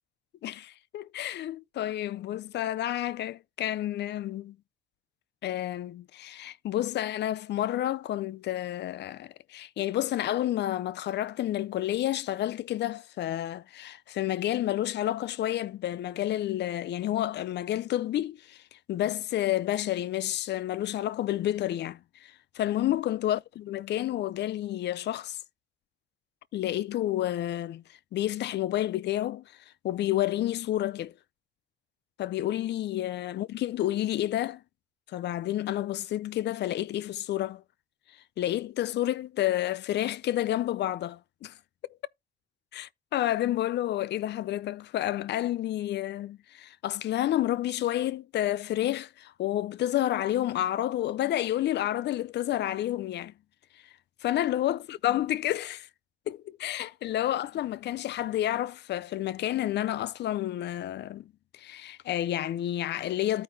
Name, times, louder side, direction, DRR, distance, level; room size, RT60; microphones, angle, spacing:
voice 1, 0.4-4.6 5.4-18.6 18.9-25.4 26.5-27.8 28.1-29.4 29.8-31.1 32.2-34.6 35.1-37.6 38.4-41.5 42.7-53.3 54.2-55.9 56.3-61.3 61.5-63.4, left 13 dB, 60° left, 0.4 m, -30 dB
14.0 x 4.7 x 2.6 m
cardioid pair, 90°, 20 cm